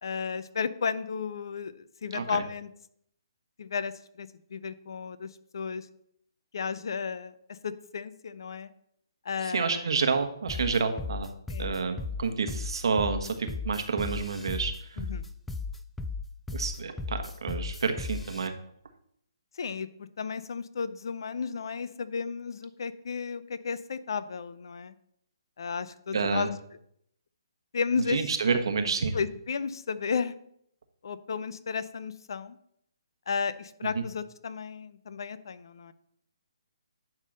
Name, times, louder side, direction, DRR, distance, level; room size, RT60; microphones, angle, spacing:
voice 1, 0.0-2.7 3.6-5.9 6.5-8.7 9.2-9.9 11.5-11.7 15.0-15.3 19.6-24.9 25.6-26.6 27.7-28.2 29.1-30.3 31.0-32.6 33.3-35.9, left 5 dB, 60° left, 14 dB, 0.6 m, -33 dB
voice 2, 2.1-2.4 9.4-11.3 11.6-15.0 16.5-18.5 26.1-26.5 28.1-29.2, right 5 dB, 65° right, 7 dB, 1.3 m, -29 dB
sound 1, 10.5-18.5, left 3 dB, 5° left, 0.4 m, -35 dB
10.5 x 3.7 x 6.5 m, 0.70 s
hypercardioid pair, 150°, 3 cm